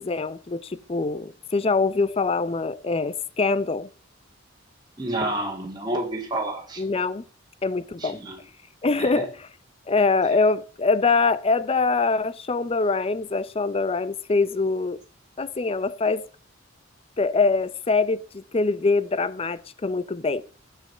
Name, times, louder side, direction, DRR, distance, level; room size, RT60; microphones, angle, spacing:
voice 1, 0.0-3.9 6.8-7.2 7.6-8.2 8.8-9.4 9.9-15.0 15.4-16.3 17.2-20.4, left 3 dB, 30° left, 0.5 m, -24 dB
voice 2, 5.0-6.8 8.0-8.4 9.0-9.3, right 1 dB, 20° right, 1.9 m, -29 dB
10.5 x 8.4 x 4.3 m
head